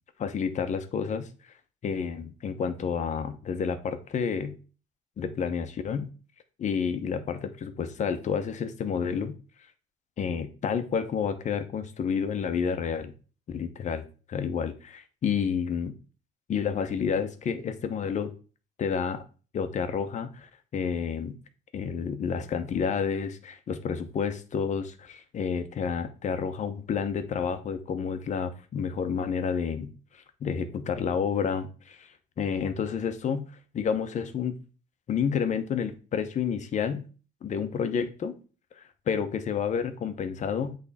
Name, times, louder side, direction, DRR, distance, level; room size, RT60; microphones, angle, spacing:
voice 1, 0.2-1.3 1.8-4.6 5.2-6.1 6.6-9.3 10.2-13.1 13.5-15.9 16.5-18.3 18.8-19.2 19.5-21.4 21.7-33.5 33.7-34.5 35.1-37.0 37.4-38.3 38.8-40.8, left 6 dB, 45° left, 10 dB, 0.9 m, -30 dB
8.1 x 3.5 x 4.2 m, 0.36 s
cardioid pair, 110°, 17 cm